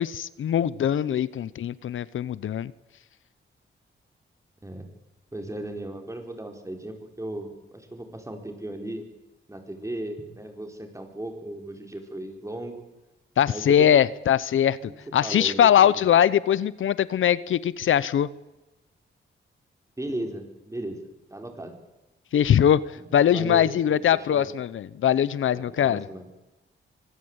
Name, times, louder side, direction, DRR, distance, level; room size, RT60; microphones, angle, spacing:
voice 1, 0.0-2.7 13.4-18.3 22.3-22.8 23.1-26.0, left 9 dB, 85° left, 19 dB, 0.8 m, -21 dB
voice 2, 5.3-9.1 9.5-12.8 13.4-14.0 14.8-14.9 15.2-15.9 20.0-21.0 21.3-21.7 23.0-23.1 23.3-24.0 24.3-24.5 25.5-26.3, right 1 dB, 15° right, 4 dB, 4.6 m, -36 dB
24.5 x 16.5 x 8.1 m, 1.0 s
cardioid pair, 90°, 20 cm